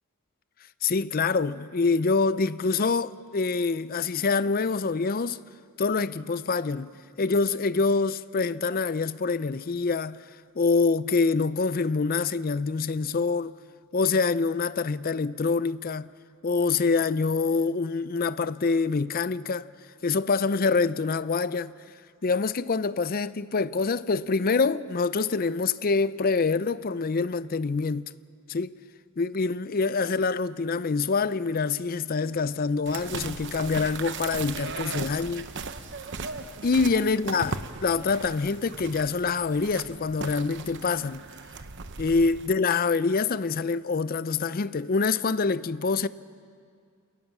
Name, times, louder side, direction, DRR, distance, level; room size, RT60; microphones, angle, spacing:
voice 1, 0.8-5.4 5.8-6.9 7.2-10.2 10.6-13.5 13.9-16.1 16.4-19.7 20.0-21.7 22.2-28.1 28.5-28.7 29.2-35.4 36.6-41.2 42.0-46.1, left 4 dB, 40° left, 0.5 m, -25 dB
sound 1, 32.9-42.5, right 4 dB, 55° right, 0.9 m, -38 dB
28.5 x 18.5 x 7.2 m
head